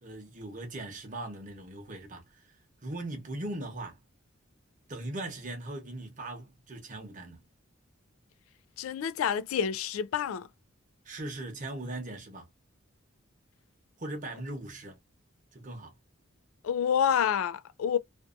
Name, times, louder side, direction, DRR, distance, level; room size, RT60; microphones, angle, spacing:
voice 1, 0.0-4.0 4.9-7.5 11.0-12.5 14.0-15.0 15.5-15.9, right 2 dB, 40° right, 0.9 m, -39 dB
voice 2, 8.8-10.5 16.6-18.0, left 8 dB, 90° left, 0.3 m, -28 dB
2.6 x 2.3 x 2.4 m
head